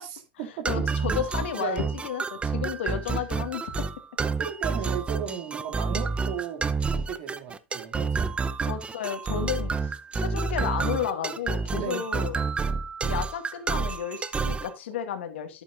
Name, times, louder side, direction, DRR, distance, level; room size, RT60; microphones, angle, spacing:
voice 1, 0.7-3.6 8.6-12.4 13.0-15.6, left 8 dB, 80° left, 2.0 m, -32 dB
sound 1, 0.7-14.7, right 4 dB, 20° right, 0.7 m, -29 dB
voice 2, 4.2-8.3 11.8-12.1, right 8 dB, 65° right, 2.6 m, -35 dB
11.0 x 8.6 x 2.6 m
hypercardioid pair, 110°, 6 cm